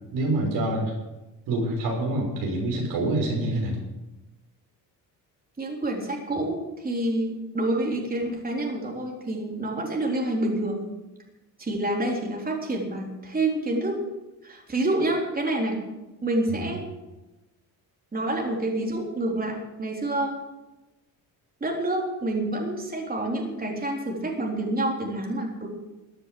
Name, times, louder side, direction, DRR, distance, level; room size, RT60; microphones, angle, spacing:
voice 1, 0.1-0.9 1.5-3.8 16.5-16.7, right 2 dB, 85° right, 0 dB, 6.1 m, -26 dB
voice 2, 5.6-10.8 11.6-13.9 14.4-15.8 16.2-16.9 18.1-20.3 21.6-25.7, right 1 dB, 25° right, -1 dB, 3.7 m, -28 dB
15.0 x 9.7 x 7.7 m, 1.0 s
cardioid pair, 100°, 38 cm